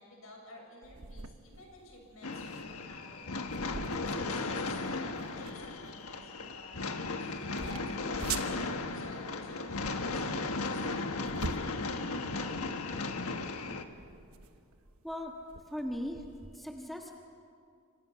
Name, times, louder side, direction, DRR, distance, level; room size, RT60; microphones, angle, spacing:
voice 1, 0.0-3.3 3.9-6.8 7.1-8.6 8.9-12.2, left 1 dB, 75° left, 0 dB, 7.1 m, -51 dB
sound 1, 0.8-16.6, right 4 dB, 90° right, 1.2 m, -45 dB
sound 2, 2.2-13.8, left 3 dB, 90° left, 1.4 m, -36 dB
voice 2, 15.7-16.2 16.5-17.1, equal, ahead, 1 dB, 1.5 m, -38 dB
27.5 x 26.0 x 5.8 m, 2.4 s
head